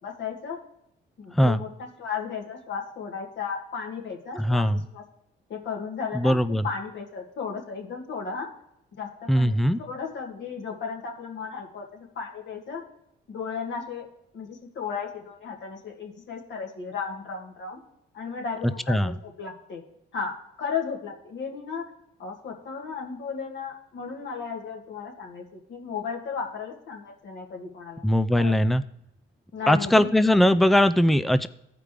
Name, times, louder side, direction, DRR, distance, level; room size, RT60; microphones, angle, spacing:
voice 1, 0.0-0.6 1.2-5.0 5.5-6.4 6.6-8.5 8.9-12.8 13.3-14.1 14.3-17.8 18.1-19.8 20.1-20.3 20.6-21.8 22.2-28.0 28.3-28.5 29.5-30.4, left 6 dB, 65° left, 0 dB, 2.1 m, -35 dB
voice 2, 4.4-4.8 6.1-6.6 9.3-9.8 18.9-19.1 28.0-28.8 29.7-31.5, left 1 dB, ahead, 13 dB, 0.4 m, -20 dB
14.5 x 5.1 x 3.3 m, 0.80 s
cardioid pair, 90°, 20 cm